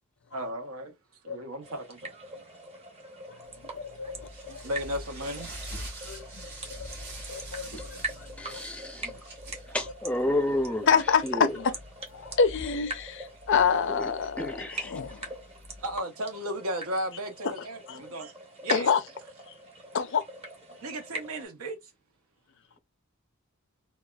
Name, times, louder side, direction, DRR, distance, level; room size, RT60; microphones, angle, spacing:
voice 1, 0.3-0.9 1.2-2.1 4.6-5.5 15.8-18.3 18.6-18.9 20.8-21.8, right 1 dB, 75° right, 0.9 m, -34 dB
sound 1, 1.6-21.4, right 2 dB, 30° right, 0.9 m, -43 dB
sound 2, 3.6-16.0, equal, 50° right, 1.9 m, -45 dB
voice 2, 3.7-4.1 4.4-4.6 6.0-6.9 7.3-8.6 9.1-9.2 10.9-11.7 12.1-15.3 17.4-17.5 17.9-18.1 18.7-19.0 19.9-20.2, left 6 dB, 55° left, 0.5 m, -27 dB
voice 3, 8.4-9.1 9.7-10.9 11.2-11.6 14.0-15.3, left 1 dB, 5° left, 0.5 m, -31 dB
4.1 x 2.3 x 2.3 m
head